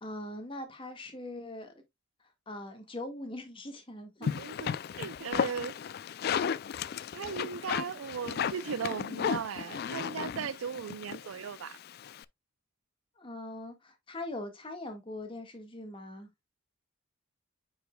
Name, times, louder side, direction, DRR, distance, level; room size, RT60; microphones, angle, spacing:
voice 1, 0.0-1.7 2.5-4.3 13.2-16.3, left 1 dB, 25° left, 1.6 m, -41 dB
sound 1, 4.2-12.2, left 7 dB, 50° left, 0.3 m, -34 dB
voice 2, 4.2-5.8 7.1-11.8, right 7 dB, 85° right, 0.4 m, -37 dB
8.9 x 5.0 x 2.2 m
head